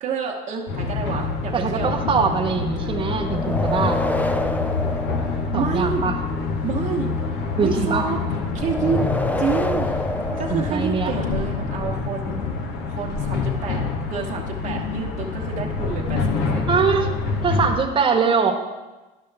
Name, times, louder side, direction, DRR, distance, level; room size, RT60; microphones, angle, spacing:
voice 1, 0.0-2.0 2.8-3.0 5.5-6.1 6.6-7.1 7.6-8.2 8.5-9.0 9.4-9.9 10.4-12.4 12.9-13.8 14.1-16.7, right 6 dB, 50° right, -1 dB, 1.0 m, -28 dB
sound 1, 0.7-17.8, left 4 dB, 75° left, 1.0 m, -26 dB
voice 2, 1.5-4.0 5.5-6.2 7.6-8.1 10.5-11.1 16.7-17.1 17.4-18.5, right 5 dB, 30° right, 1 dB, 1.2 m, -22 dB
sound 2, 3.2-6.0 8.6-11.3, left 1 dB, 10° left, 0.4 m, -28 dB
13.0 x 5.3 x 3.4 m, 1.2 s
cardioid pair, 100°, 17 cm